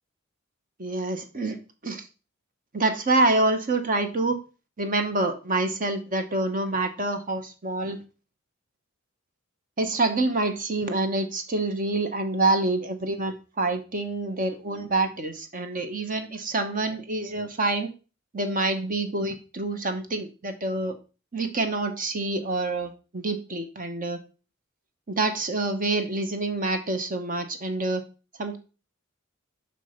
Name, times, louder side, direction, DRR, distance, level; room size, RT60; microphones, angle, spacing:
voice 1, 0.8-2.1 2.7-4.4 4.8-8.0 9.8-17.9 18.3-21.0 21.3-24.2 25.1-28.0 28.4-28.6, right 2 dB, 40° right, 6 dB, 1.1 m, -27 dB
7.4 x 5.5 x 5.1 m, 0.34 s
head